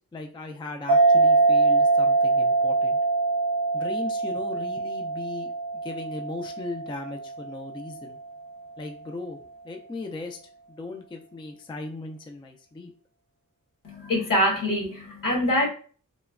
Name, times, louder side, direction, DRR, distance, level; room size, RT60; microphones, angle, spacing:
voice 1, 0.1-3.0 3.7-5.5 5.8-8.2 8.8-9.4 9.6-10.4 10.7-12.9, left 3 dB, 15° left, 3 dB, 0.3 m, -37 dB
sound 1, 0.9-7.9, right 3 dB, 85° right, 0.5 m, -23 dB
voice 2, 13.8-15.7, left 1 dB, 75° left, -2 dB, 1.2 m, -24 dB
3.0 x 2.1 x 2.3 m, 0.42 s
wide cardioid pair, 70°, 33 cm